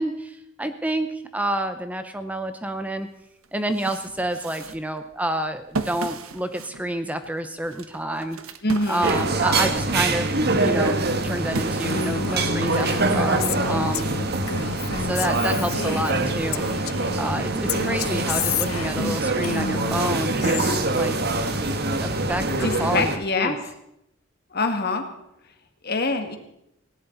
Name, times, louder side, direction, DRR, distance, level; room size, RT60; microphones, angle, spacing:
voice 1, 0.0-3.1 3.5-8.4 8.9-14.1 15.0-21.2 22.0-23.6, right 1 dB, 5° right, 9 dB, 0.7 m, -29 dB
sound 1, 2.9-3.0 3.4-9.8 10.2-12.9, right 3 dB, 85° right, 1.2 m, -36 dB
voice 2, 8.6-9.3 22.5-23.6 24.5-25.1 25.8-26.4, left 3 dB, 50° left, 6 dB, 2.0 m, -25 dB
sound 2, 9.0-23.2, right 2 dB, 50° right, 1.4 m, -24 dB
Female speech woman speaking, 11.8-17.2 17.7-20.8, left 7 dB, 85° left, 0.6 m, -31 dB
18.5 x 17.5 x 4.0 m, 0.78 s
head